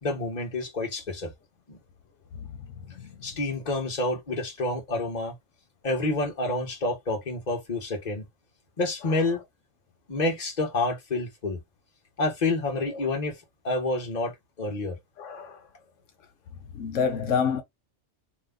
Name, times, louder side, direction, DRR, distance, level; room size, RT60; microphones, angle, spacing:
voice 1, 0.0-1.3 1.7-1.8 3.2-5.3 5.8-8.2 8.8-9.4 10.1-11.6 12.2-13.3 13.6-14.3 14.6-15.0, left 2 dB, 35° left, 1.2 m, -28 dB
voice 2, 15.2-15.6 16.7-17.6, left 6 dB, 85° left, 1.1 m, -27 dB
2.9 x 2.2 x 3.6 m
omnidirectional pair, 1.2 m